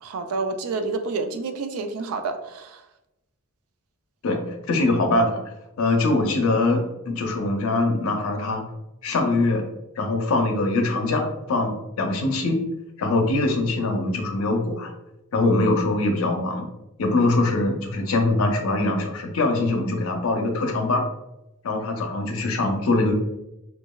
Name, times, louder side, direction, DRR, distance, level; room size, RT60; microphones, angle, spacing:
voice 1, 0.0-2.8, right 3 dB, 85° right, 7 dB, 0.3 m, -29 dB
voice 2, 4.2-5.4 5.8-8.6 9.0-9.6 10.0-12.6 13.0-14.9 15.3-16.7 17.0-21.0 21.6-23.1, left 2 dB, 75° left, 3 dB, 0.5 m, -23 dB
2.9 x 2.3 x 2.2 m, 0.93 s
head